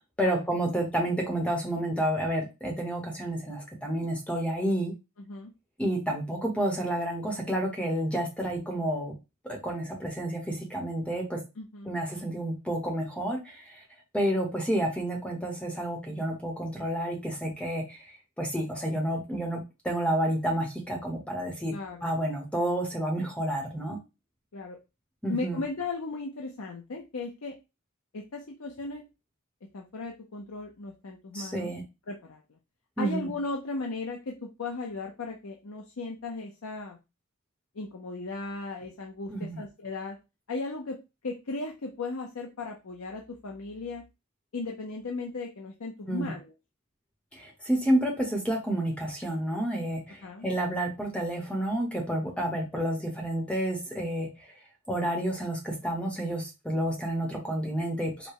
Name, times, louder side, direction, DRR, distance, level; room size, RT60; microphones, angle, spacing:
voice 1, 0.2-4.9 5.8-9.2 9.4-11.4 11.9-13.8 14.1-18.1 18.4-21.7 22.0-24.0 25.2-25.6 31.3-31.8 33.0-33.3 39.3-39.6 46.1-46.3 47.3-54.3 54.9-58.3, right 1 dB, 5° left, 1 dB, 1.0 m, -30 dB
voice 2, 11.6-11.9 21.7-22.1 24.5-24.8 25.3-27.5 28.1-29.0 29.7-31.7 32.1-32.4 33.0-37.0 37.7-40.2 40.5-41.0 41.2-44.0 44.5-46.5 50.2-50.4, left 3 dB, 80° left, 1 dB, 0.7 m, -36 dB
5.0 x 2.2 x 4.7 m, 0.26 s
head